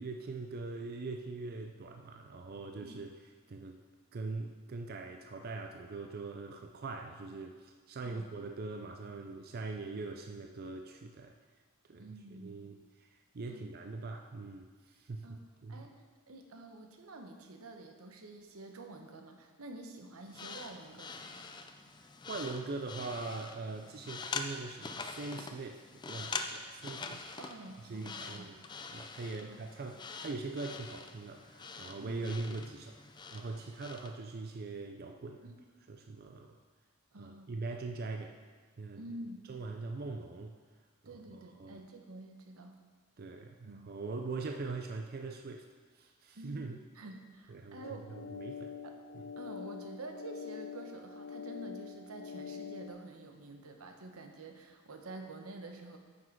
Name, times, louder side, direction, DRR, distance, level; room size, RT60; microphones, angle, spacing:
voice 1, 0.0-3.8 4.1-11.3 11.9-15.9 22.0-27.2 27.8-28.6 28.9-35.5 35.9-36.5 37.2-38.4 38.8-39.0 39.5-40.5 41.0-41.8 43.2-45.6 45.9-46.8 47.5-48.8 49.1-49.2, right 3 dB, 45° right, 4 dB, 0.4 m, -42 dB
voice 2, 12.0-12.6 13.5-13.7 15.2-15.4 15.7-21.5 23.8-23.9 27.4-28.5 29.4-29.6 32.0-32.2 35.4-35.6 37.1-37.5 39.0-39.5 41.0-42.8 43.6-43.9 46.3-48.2 48.8-49.0 49.4-56.0, right 2 dB, 85° right, 4 dB, 1.0 m, -48 dB
sound 1, 20.3-34.1, left 4 dB, 20° left, 0.4 m, -44 dB
sound 2, 47.8-52.9, left 6 dB, 85° left, 0.6 m, -45 dB
9.3 x 6.2 x 4.6 m, 1.5 s
head